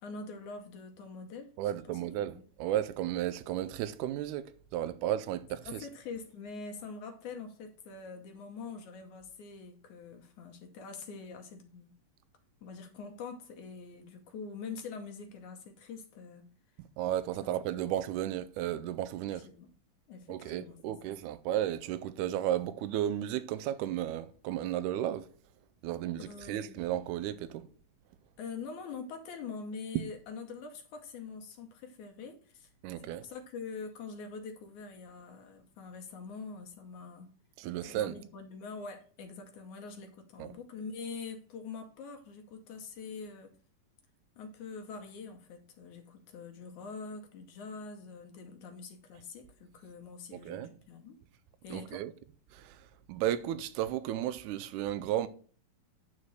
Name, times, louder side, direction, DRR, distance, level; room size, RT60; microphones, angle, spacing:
voice 1, 0.0-2.0 2.3-2.4 5.6-11.9 12.6-16.5 17.4-18.0 19.3-19.7 20.1-20.9 26.3-26.7 28.4-32.7 33.0-37.3 37.9-43.5 44.4-51.2 51.6-52.1, left 4 dB, 70° left, 2.1 m, -44 dB
voice 2, 1.6-5.9 17.0-19.5 20.3-25.3 25.8-27.7 32.8-33.3 37.6-38.2 40.4-40.5 50.3-50.7 51.7-52.1 52.5-52.8 53.1-55.3, right 12 dB, 90° right, 1.7 m, -34 dB
9.6 x 4.3 x 6.3 m
omnidirectional pair, 4.1 m